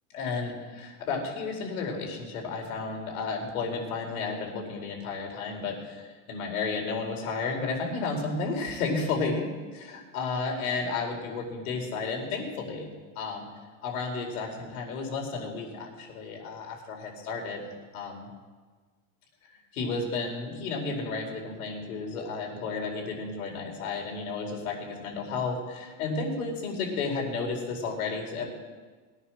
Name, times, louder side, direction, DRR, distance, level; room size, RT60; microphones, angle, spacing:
voice 1, 0.1-9.5 9.9-12.9 13.1-13.4 13.8-18.3 19.7-28.5, left 4 dB, 80° left, 0 dB, 4.6 m, -32 dB
21.0 x 9.8 x 6.3 m, 1.4 s
supercardioid pair, 165°, 43 cm